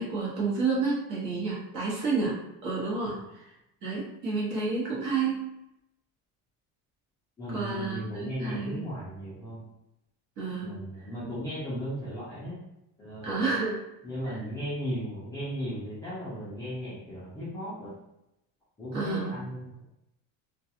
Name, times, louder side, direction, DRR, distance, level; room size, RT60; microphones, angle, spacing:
voice 1, 0.0-3.2 3.8-5.4 7.5-8.8 10.4-10.8 13.2-13.8 18.9-19.4, right 4 dB, 50° right, -6 dB, 1.0 m, -30 dB
voice 2, 7.4-9.6 10.6-12.6 13.0-13.5 14.0-17.9 18.8-19.9, equal, 10° left, -12 dB, 0.3 m, -36 dB
2.3 x 2.3 x 2.7 m, 0.87 s
cardioid pair, 180°, 37 cm